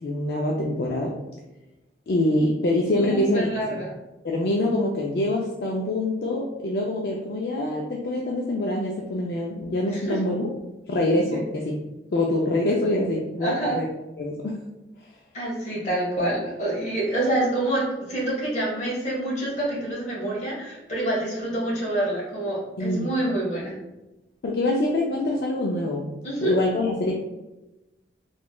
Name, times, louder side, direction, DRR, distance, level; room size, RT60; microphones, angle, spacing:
voice 1, 0.0-1.2 2.1-3.8 4.2-10.5 10.9-11.8 12.1-13.9 14.2-14.6 22.8-23.1 24.4-26.1 26.4-27.1, left 1 dB, 60° left, -1 dB, 0.4 m, -25 dB
voice 2, 3.0-3.9 9.9-10.2 11.3-11.4 13.4-13.8 15.3-23.8 26.2-26.6, right 1 dB, 40° left, -5 dB, 1.3 m, -27 dB
3.1 x 3.1 x 2.2 m, 1.0 s
head